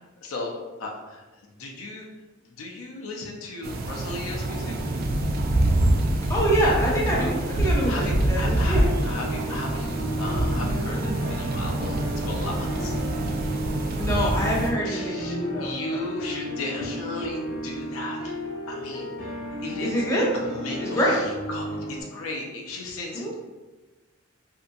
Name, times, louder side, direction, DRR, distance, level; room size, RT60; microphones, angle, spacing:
voice 1, 0.2-1.2 1.6-2.1 2.6-4.9 7.6-12.9 14.8-18.4 18.7-20.0 20.3-23.3, left 2 dB, 85° left, -1 dB, 0.4 m, -35 dB
sound 1, 3.6-14.7, right 1 dB, 50° right, 0.3 m, -26 dB
sound 2, 4.7-14.7, equal, 70° right, 1.3 m, -35 dB
voice 2, 6.3-8.8 14.0-16.1 19.8-20.3 20.8-21.2 23.1-23.3, equal, 15° left, -5 dB, 0.6 m, -25 dB
sound 3, 8.8-22.0, equal, 55° left, 0.8 m, -34 dB
2.7 x 2.5 x 2.3 m, 1.2 s
head